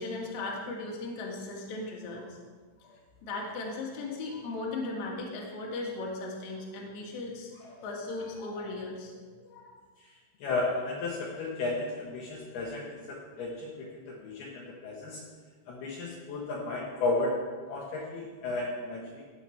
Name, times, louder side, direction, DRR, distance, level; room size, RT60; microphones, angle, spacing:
voice 1, 0.0-2.4 2.8-9.8, left 2 dB, 50° left, -2 dB, 2.7 m, -37 dB
voice 2, 10.4-15.2 15.7-17.4 17.7-19.2, left 2 dB, 65° left, -3 dB, 2.9 m, -33 dB
17.0 x 8.0 x 4.5 m, 1.5 s
omnidirectional pair, 5.4 m